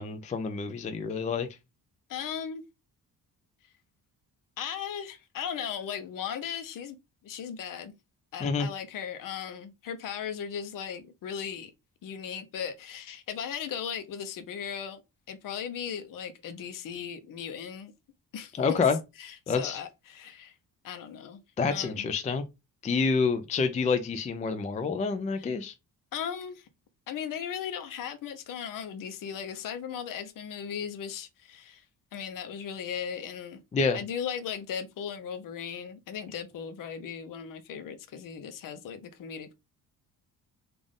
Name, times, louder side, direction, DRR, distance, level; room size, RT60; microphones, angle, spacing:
voice 1, 0.0-1.5 8.4-8.7 18.6-19.0 19.5-19.8 21.6-22.5 22.8-25.7 33.7-34.0, left 5 dB, 20° left, 0.3 m, -28 dB
voice 2, 2.1-2.6 4.6-7.0 7.2-7.9 8.3-11.7 12.0-15.0 15.3-17.9 18.3-18.5 19.2-20.6 20.8-21.4 21.7-22.1 25.4-25.5 26.1-26.7 27.1-31.8 32.1-33.6 33.9-39.5, left 8 dB, 60° left, 0.7 m, -37 dB
3.6 x 2.5 x 3.6 m
cardioid pair, 140°, 37 cm